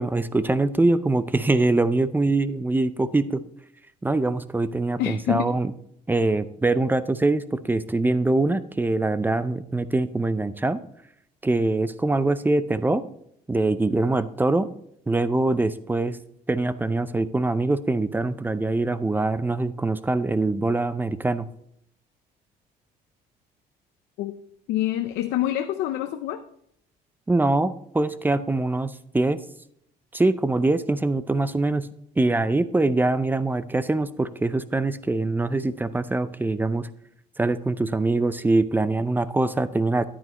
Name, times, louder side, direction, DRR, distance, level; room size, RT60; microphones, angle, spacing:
voice 1, 0.0-3.4 4.0-5.7 6.1-10.8 11.4-13.1 13.5-14.7 15.1-16.2 16.5-21.5 27.3-29.4 30.1-31.9 32.2-36.9 37.4-40.0, right 2 dB, 10° right, 14 dB, 0.5 m, -23 dB
voice 2, 5.0-5.5 24.2-24.3 24.7-26.4, left 13 dB, 85° left, 7 dB, 0.6 m, -26 dB
10.0 x 9.3 x 3.0 m, 0.71 s
cardioid pair, 110°, 17 cm